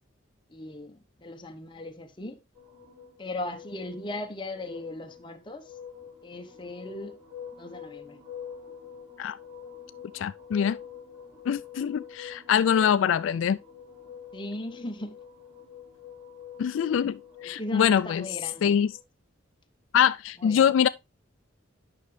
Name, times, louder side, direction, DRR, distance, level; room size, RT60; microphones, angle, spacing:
voice 1, 0.5-2.4 3.2-5.7 6.2-7.1 7.6-8.2 14.3-15.2 17.4-18.8 20.4-20.8, left 1 dB, 25° left, 1.0 m, -38 dB
sound 1, 2.5-19.0, left 8 dB, 15° right, 2.5 m, -46 dB
voice 2, 10.1-10.8 11.5-13.6 16.6-18.3 18.6-18.9 19.9-20.9, left 8 dB, 75° left, 0.3 m, -24 dB
9.1 x 5.7 x 3.2 m
head